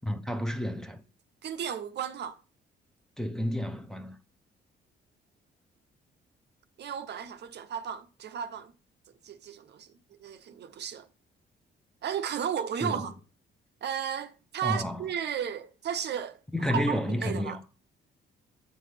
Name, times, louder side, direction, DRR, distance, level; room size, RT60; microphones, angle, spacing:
voice 1, 0.0-1.0 3.2-4.2 12.8-13.0 14.6-15.1 16.5-17.6, left 1 dB, 5° left, 0.6 m, -31 dB
voice 2, 1.4-2.4 6.8-8.7 9.2-9.9 10.2-11.1 12.0-13.1 13.8-17.6, right 8 dB, 60° right, 0.6 m, -34 dB
7.9 x 4.0 x 3.3 m
cardioid pair, 90°, 20 cm